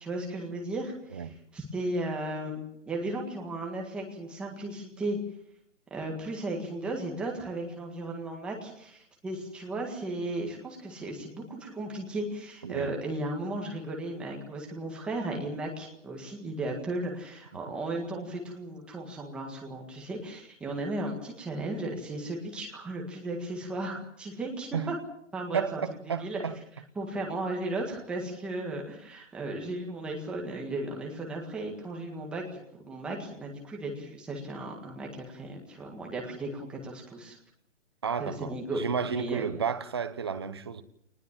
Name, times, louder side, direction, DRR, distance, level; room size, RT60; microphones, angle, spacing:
voice 1, 0.0-5.2 5.9-25.0 25.3-25.8 26.2-26.4 27.0-37.4 38.2-39.5, right 2 dB, 5° right, 1.7 m, -35 dB
voice 2, 12.6-12.9 24.7-24.9 25.5-26.6 38.0-40.8, right 6 dB, 20° right, 0.9 m, -32 dB
24.0 x 20.0 x 7.4 m
hypercardioid pair, 180°, 36 cm